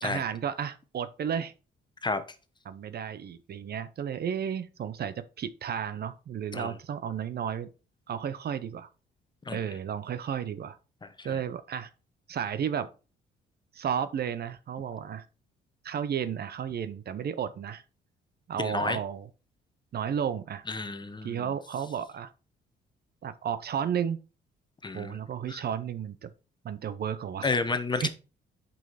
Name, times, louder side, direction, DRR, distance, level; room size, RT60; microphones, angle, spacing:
voice 1, 0.0-1.5 2.7-7.7 8.1-8.9 9.5-10.8 11.2-11.9 12.3-12.9 13.7-15.2 15.8-17.8 18.5-19.3 19.9-20.6 21.2-22.3 23.2-24.2 24.9-26.3 26.6-27.6 28.0-28.1, right 8 dB, 55° right, 0.7 m, -33 dB
voice 2, 18.6-19.0 20.7-21.4 24.8-25.2 25.5-25.6 27.4-28.1, left 3 dB, 20° left, 1.0 m, -30 dB
6.2 x 5.5 x 4.1 m
cardioid pair, 90°, 20 cm